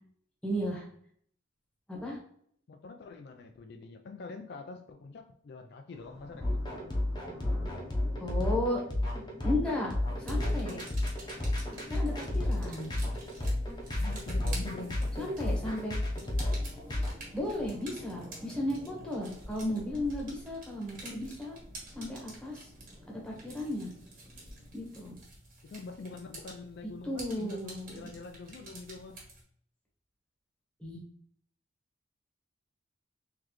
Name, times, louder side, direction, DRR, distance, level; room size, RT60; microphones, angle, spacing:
voice 1, 0.4-0.9 1.9-2.2 8.2-8.8 9.4-10.8 11.9-12.9 15.2-15.9 17.3-21.5 21.9-22.7 23.1-23.9 24.7-25.1 27.0-28.0 30.8-31.0, left 1 dB, 5° left, -2 dB, 1.1 m, -34 dB
voice 2, 2.7-6.8 13.9-15.4 25.6-29.2, left 3 dB, 55° left, 5 dB, 0.4 m, -45 dB
sound 1, 5.9-25.2, equal, 15° right, 0.8 m, -50 dB
sound 2, 6.4-17.1, left 1 dB, 20° left, 0.8 m, -31 dB
sound 3, 10.0-29.4, right 2 dB, 45° right, 1.5 m, -50 dB
3.9 x 3.2 x 3.0 m, 0.63 s
head